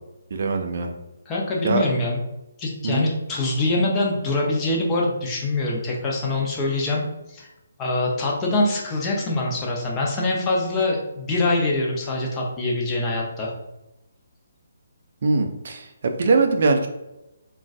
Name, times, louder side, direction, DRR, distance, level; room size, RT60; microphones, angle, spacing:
voice 1, 0.3-0.9 1.6-1.8 2.8-3.1 15.2-16.9, right 3 dB, 55° right, 5 dB, 0.4 m, -21 dB
voice 2, 1.3-2.2 2.6-7.0 7.3-7.5 7.8-13.5, left 2 dB, 20° left, -3 dB, 0.6 m, -24 dB
3.7 x 2.2 x 2.5 m, 0.92 s
figure-of-eight pair, 150°, 0 cm